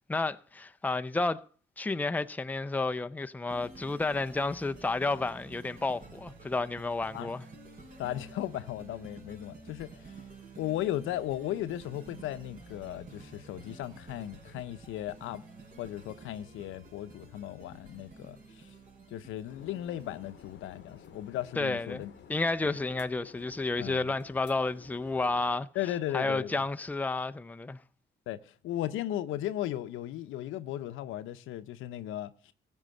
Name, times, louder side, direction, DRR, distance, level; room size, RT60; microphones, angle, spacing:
voice 1, 0.1-1.4 1.8-7.5 21.6-22.0 22.3-25.7 26.1-27.8, left 3 dB, 10° left, 0.5 m, -31 dB
sound 1, 3.5-22.8, right 3 dB, 45° right, 5.0 m, -51 dB
voice 2, 8.0-10.0 10.6-15.4 15.8-18.7 19.1-22.1 22.6-22.7 23.8-24.1 25.7-26.6 28.3-32.5, left 13 dB, 90° left, 0.8 m, -36 dB
sound 2, 19.5-25.6, left 9 dB, 65° left, 0.9 m, -54 dB
15.0 x 5.4 x 7.6 m
cardioid pair, 90°, 20 cm